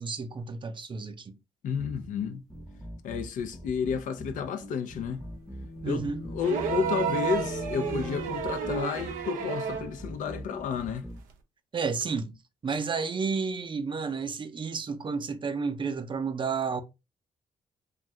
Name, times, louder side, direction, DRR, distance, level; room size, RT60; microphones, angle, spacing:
voice 1, 0.0-1.4 5.8-6.2 11.7-12.4 12.6-16.8, right 5 dB, 35° right, 0.5 m, -31 dB
voice 2, 1.6-2.4 3.0-5.3 5.9-11.1, left 7 dB, 70° left, 0.5 m, -31 dB
sound 1, 1.8-11.2, right 1 dB, ahead, 0.7 m, -44 dB
sound 2, 5.1-9.0, left 1 dB, 40° left, 0.9 m, -40 dB
sound 3, 6.4-10.0 11.3-11.4, right 7 dB, 90° right, 0.5 m, -31 dB
2.6 x 2.3 x 3.2 m
supercardioid pair, 60°, 14 cm